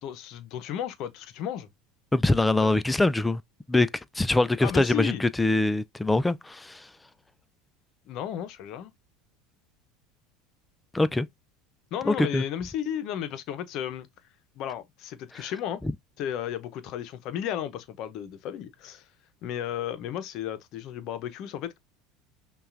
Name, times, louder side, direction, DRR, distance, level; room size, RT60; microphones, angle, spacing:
voice 1, 0.0-1.7 2.6-2.7 4.6-5.2 8.1-8.9 11.9-14.1 14.6-15.8 16.2-19.0 19.4-21.8, left 10 dB, 60° left, 0.7 m, -34 dB
voice 2, 2.1-3.4 3.7-3.9 4.2-6.8 10.9-11.3 12.1-12.4 15.4-15.5, left 2 dB, 10° left, 0.3 m, -23 dB
5.5 x 2.3 x 2.5 m
supercardioid pair, 100°, 0 cm